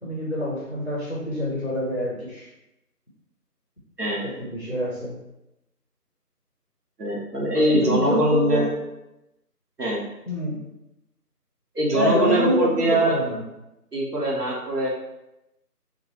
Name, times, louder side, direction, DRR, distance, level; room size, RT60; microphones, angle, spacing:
voice 1, 0.0-2.5 4.2-5.1 7.5-8.7 10.3-10.6 11.9-13.4, equal, 45° left, -5 dB, 0.6 m, -26 dB
voice 2, 4.0-4.4 7.0-8.7 9.8-10.0 11.7-13.2 13.9-14.9, right 1 dB, 70° right, -4 dB, 1.0 m, -23 dB
2.8 x 2.3 x 2.7 m, 0.91 s
figure-of-eight pair, 180°, 48 cm